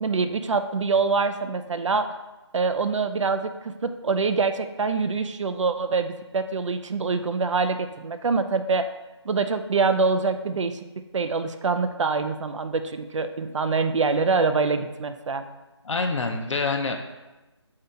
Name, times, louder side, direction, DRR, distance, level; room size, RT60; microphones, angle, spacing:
voice 1, 0.0-2.1 2.5-8.9 9.3-15.5, right 4 dB, 90° right, 9 dB, 0.4 m, -25 dB
voice 2, 15.8-17.0, left 3 dB, 90° left, 4 dB, 0.5 m, -26 dB
4.3 x 2.8 x 3.7 m, 1.1 s
figure-of-eight pair, 165°, 15 cm